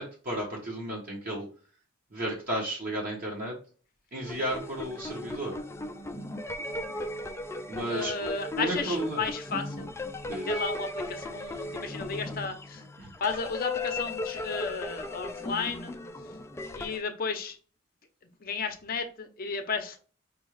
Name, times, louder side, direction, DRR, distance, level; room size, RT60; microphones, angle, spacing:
voice 1, 0.0-1.5 2.1-3.6 4.1-5.5 7.7-8.1 8.6-9.2 10.3-10.5 13.0-13.1, right 1 dB, 45° right, 1.1 m, -33 dB
sound 1, 4.2-17.0, left 2 dB, 15° left, 0.4 m, -37 dB
voice 2, 7.9-9.9 10.4-12.8 13.2-15.9 16.7-17.6 18.4-20.0, left 4 dB, 50° left, 0.6 m, -33 dB
5.2 x 2.3 x 3.1 m
head